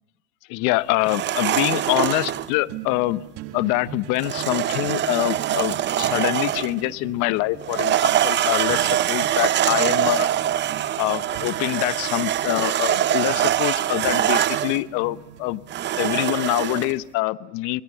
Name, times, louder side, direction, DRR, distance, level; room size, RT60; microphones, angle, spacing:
voice 1, 0.5-3.2 3.5-10.3 11.0-15.6 16.0-17.8, left 19 dB, 55° left, 16 dB, 1.0 m, -25 dB
sound 1, 1.0-2.5 4.2-6.8 7.6-14.8 15.7-16.9, right 11 dB, 30° right, 0.8 m, -23 dB
sound 2, 1.5-15.6, right 10 dB, 50° right, 2.0 m, -41 dB
27.0 x 21.0 x 7.8 m, 0.99 s
supercardioid pair, 110°, 36 cm